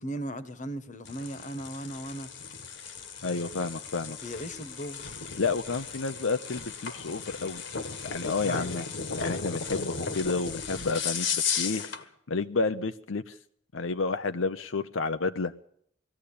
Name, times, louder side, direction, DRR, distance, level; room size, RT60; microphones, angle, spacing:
voice 1, 0.0-2.3 4.2-5.2 8.4-8.7, equal, 40° left, 1.3 m, -37 dB
sound 1, 1.0-12.0, left 5 dB, 65° left, 1.7 m, -35 dB
voice 2, 3.2-4.2 5.4-7.6 8.0-8.8 9.2-11.8 12.3-13.3 13.7-15.5, left 4 dB, 80° left, 0.8 m, -30 dB
21.0 x 15.0 x 8.6 m
head